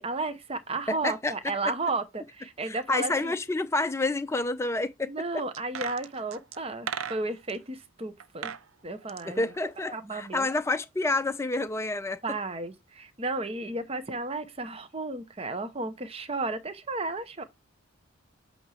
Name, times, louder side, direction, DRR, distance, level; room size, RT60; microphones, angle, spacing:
voice 1, 0.0-3.4 5.1-8.5 8.8-9.4 9.9-10.5 12.2-17.4, right 3 dB, 30° right, 0.7 m, -33 dB
voice 2, 0.9-1.3 2.7-5.4 9.2-12.2, left 2 dB, 15° left, 0.5 m, -29 dB
sound 1, 5.5-7.6 8.2-8.6 8.9-10.3 10.6-10.7, right 8 dB, 75° right, 0.5 m, -38 dB
8.4 x 2.9 x 4.8 m
head